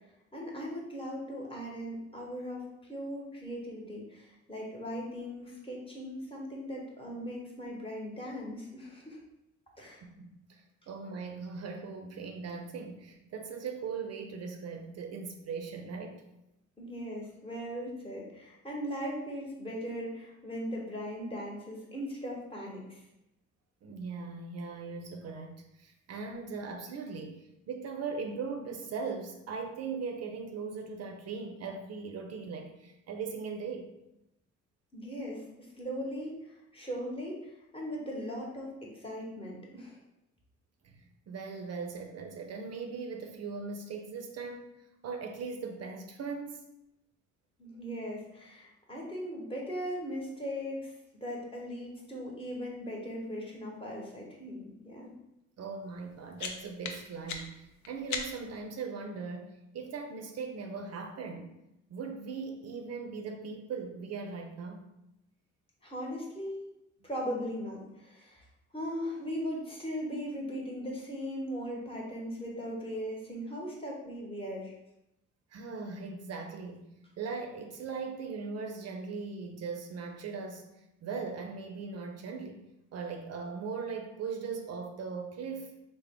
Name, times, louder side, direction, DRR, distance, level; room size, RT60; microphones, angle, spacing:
voice 1, 0.3-9.2 9.8-10.0 16.8-23.0 34.9-36.3 36.7-40.0 47.6-50.9 51.2-55.1 65.8-66.7 67.0-68.4 68.7-74.7, equal, 20° left, -3 dB, 1.0 m, -39 dB
voice 2, 10.0-16.2 23.8-33.9 40.8-41.0 41.3-44.7 45.0-46.6 55.6-61.5 61.9-64.8 75.5-76.9 77.2-80.6 81.0-82.6 82.9-85.7, right 5 dB, 55° right, 4 dB, 0.5 m, -39 dB
sound 1, 55.9-58.6, left 5 dB, 70° left, 0.5 m, -40 dB
3.4 x 2.1 x 3.6 m, 0.88 s
cardioid pair, 90°, 30 cm